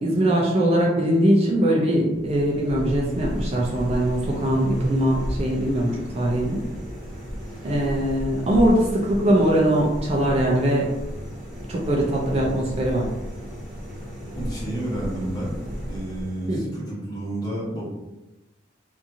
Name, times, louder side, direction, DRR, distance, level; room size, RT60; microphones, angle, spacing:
voice 1, 0.0-6.6 7.6-10.9 11.7-13.1 16.5-16.6, right 1 dB, 35° right, -3 dB, 0.4 m, -21 dB
sound 1, 2.1-16.8, equal, 5° right, 0.9 m, -34 dB
voice 2, 14.3-15.6 15.9-17.8, right 1 dB, 20° left, -7 dB, 1.0 m, -30 dB
2.8 x 2.5 x 2.6 m, 1.0 s
head